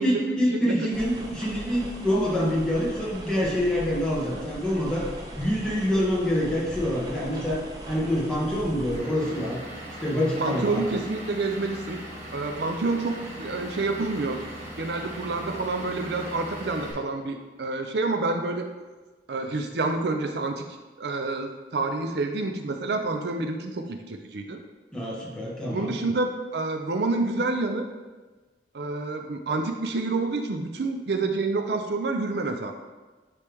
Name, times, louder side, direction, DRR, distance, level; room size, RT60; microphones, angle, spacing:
voice 1, 0.0-5.0 5.4-9.6 10.0-10.8 24.9-25.9, equal, 5° left, -7 dB, 1.4 m, -26 dB
sound 1, 0.9-9.0, right 1 dB, 20° right, 0.9 m, -39 dB
Vehicle / Engine, 8.9-16.9, right 1 dB, 40° right, 1.7 m, -39 dB
voice 2, 10.4-12.0 12.3-14.4 14.8-18.7 19.3-20.6 21.0-24.6 25.7-27.9 28.7-32.7, right 3 dB, 70° right, 5 dB, 0.5 m, -28 dB
9.8 x 3.3 x 3.4 m, 1.3 s
head